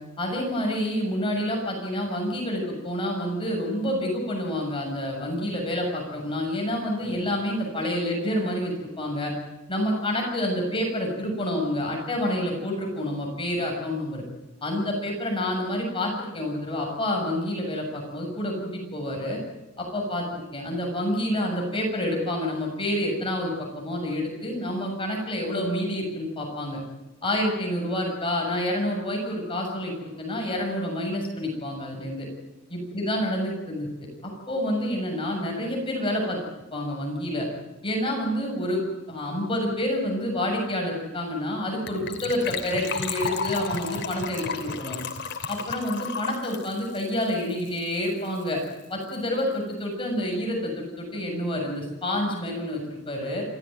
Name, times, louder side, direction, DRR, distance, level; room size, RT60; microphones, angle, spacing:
voice 1, 0.2-9.3 9.7-14.2 14.6-19.4 19.8-26.8 27.2-32.3 32.7-33.9 34.2-36.4 36.7-37.5 37.8-45.0 45.5-48.6 48.9-53.4, left 1 dB, 25° left, 0 dB, 7.1 m, -28 dB
Gurgling / Trickle dribble / Fill (with liquid), 41.9-48.1 48.4-48.5 48.6-48.8 49.1-49.2, left 5 dB, 60° left, 2.9 m, -33 dB
28.0 x 15.0 x 9.2 m, 1.0 s
head